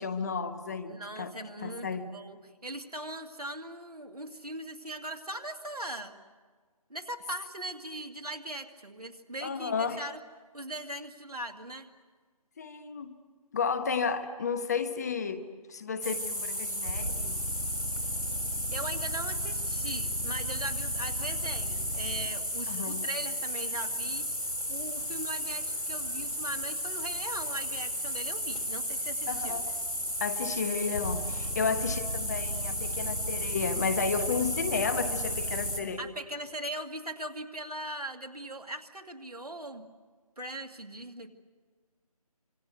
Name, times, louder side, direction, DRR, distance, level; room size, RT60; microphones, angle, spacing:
voice 1, 0.0-1.3 1.6-2.1 9.4-10.0 12.6-13.1 13.5-15.4 15.7-17.3 22.7-23.1 29.3-29.7 30.2-36.1, left 5 dB, 25° left, 10 dB, 1.1 m, -32 dB
voice 2, 0.9-6.1 6.9-10.2 10.5-11.9 18.7-29.6 36.0-39.8 40.4-41.3, right 1 dB, 75° right, 6 dB, 2.2 m, -40 dB
sound 1, 16.0-35.8, equal, 85° left, 6.6 m, -33 dB
26.5 x 23.5 x 8.0 m, 1.5 s
figure-of-eight pair, 155°, 20 cm